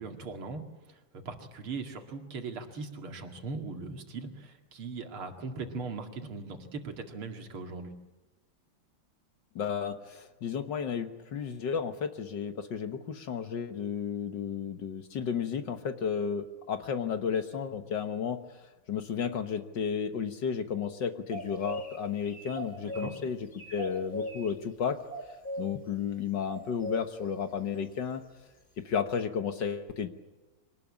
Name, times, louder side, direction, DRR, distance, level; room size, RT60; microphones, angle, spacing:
voice 1, 0.0-7.9 22.8-23.2, right 4 dB, 70° right, 5 dB, 3.0 m, -40 dB
voice 2, 9.6-18.4 18.9-25.0 25.6-28.2 28.8-30.1, left 7 dB, 55° left, 8 dB, 1.8 m, -33 dB
sound 1, 21.3-22.0 22.3-23.2 23.5-24.5 25.1-25.6 26.5-27.0, equal, 25° left, 2.4 m, -38 dB
24.5 x 19.0 x 8.6 m, 1.1 s
omnidirectional pair, 2.4 m